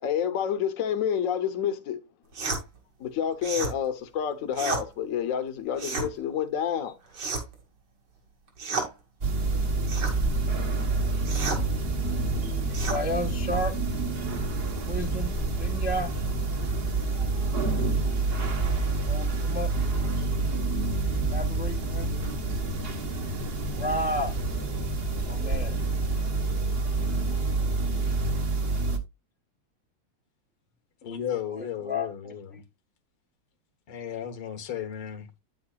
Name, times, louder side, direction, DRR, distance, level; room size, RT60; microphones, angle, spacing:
voice 1, 0.0-2.0 3.0-6.9, left 8 dB, 50° left, 1.1 m, -28 dB
sound 1, 2.3-2.6 3.4-3.7 4.5-4.8 5.7-6.1 7.1-7.6 8.6-8.9 9.9-10.2 11.3-11.6 12.7-13.0, right 3 dB, 75° right, 3.1 m, -31 dB
sound 2, 9.2-29.0, right 3 dB, 40° right, 0.9 m, -28 dB
voice 2, 12.7-13.7 14.8-16.1 19.0-19.7 21.3-22.1 23.6-24.4 25.3-25.8 31.5-32.6, left 1 dB, 10° right, 0.4 m, -32 dB
voice 3, 31.0-32.6 33.9-35.3, left 9 dB, 75° left, 2.1 m, -34 dB
9.2 x 8.6 x 2.3 m
omnidirectional pair, 2.4 m